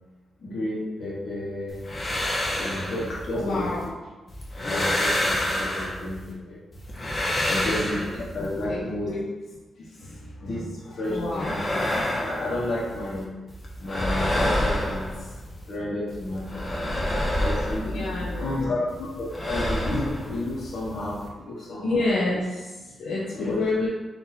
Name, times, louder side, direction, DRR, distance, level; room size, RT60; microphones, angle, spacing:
voice 1, 0.4-1.8 2.6-3.7 4.6-6.6 7.5-8.0 8.3-9.1 10.0-11.8 12.2-13.3 13.8-15.0 15.7-16.6 17.4-19.1 19.5-22.0 23.3-23.6, left 1 dB, 60° left, -7 dB, 1.2 m, -31 dB
sound 1, 1.7-3.9 4.3-6.3 6.7-8.6 11.0-13.2 13.5-15.8 16.1-18.6 18.9-21.3, left 1 dB, 30° left, 0.9 m, -28 dB
voice 2, 3.3-3.8 4.6-5.0 7.0-8.1 8.7-9.2 11.1-11.5 17.8-18.8 21.8-23.9, left 2 dB, 80° left, -6 dB, 0.7 m, -29 dB
4.2 x 2.8 x 4.0 m, 1.2 s
cardioid pair, 85°, 0 cm